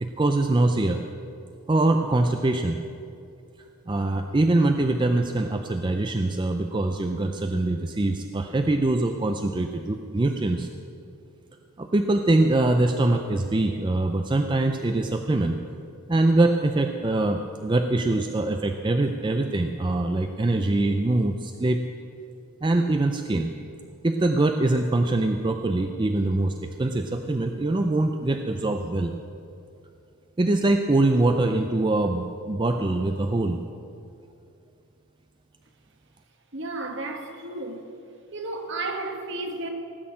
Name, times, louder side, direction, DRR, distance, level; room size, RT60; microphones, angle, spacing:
voice 1, 0.0-1.0 1.7-2.8 3.9-10.7 11.8-15.6 16.1-21.9 22.6-23.5 24.0-29.1 30.4-33.6, right 2 dB, 20° right, 6 dB, 0.4 m, -23 dB
voice 2, 36.5-37.9 38.3-39.7, right 2 dB, 55° right, 4 dB, 1.5 m, -33 dB
18.5 x 6.4 x 8.6 m, 2.6 s
head